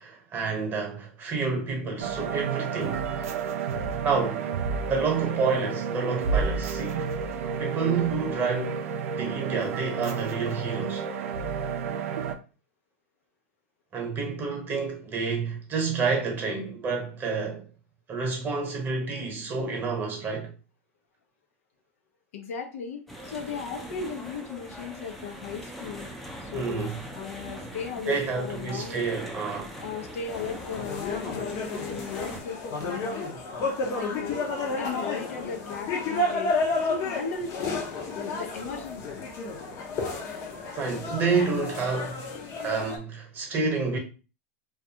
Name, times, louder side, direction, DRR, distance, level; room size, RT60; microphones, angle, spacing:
voice 1, 0.0-3.1 4.0-4.5 4.8-7.1 7.6-8.8 9.2-11.0 13.9-17.7 18.1-20.5 26.5-27.0 28.1-29.8 40.7-42.3 42.6-44.0, right 4 dB, 25° right, 0.9 m, -29 dB
sound 1, 2.0-12.3, right 5 dB, 80° right, 0.4 m, -30 dB
voice 2, 22.3-26.1 26.4-26.9 27.1-29.1 29.8-33.2 34.0-34.4 34.8-36.5 36.8-37.5 38.3-39.2, left 6 dB, 80° left, 0.7 m, -36 dB
sound 2, 23.1-32.4, equal, ahead, 0.5 m, -42 dB
sound 3, 30.3-43.0, left 3 dB, 45° left, 0.7 m, -31 dB
2.4 x 2.3 x 2.7 m
supercardioid pair, 125°, 8 cm